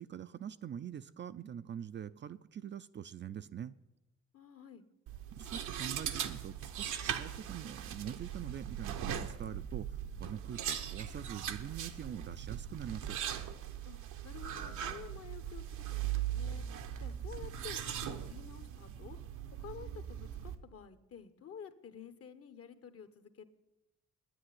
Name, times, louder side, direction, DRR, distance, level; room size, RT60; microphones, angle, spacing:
voice 1, 0.0-3.7 5.3-13.2, right 9 dB, 40° right, 12 dB, 0.4 m, -44 dB
voice 2, 4.3-4.8 13.8-14.0 14.2-16.7 17.0-19.2 19.6-23.4, left 7 dB, 50° left, 11 dB, 1.1 m, -50 dB
sound 1, 5.1-20.5, right 9 dB, 80° right, 1.0 m, -40 dB
9.6 x 9.1 x 9.6 m, 0.99 s
cardioid pair, 90°, 30 cm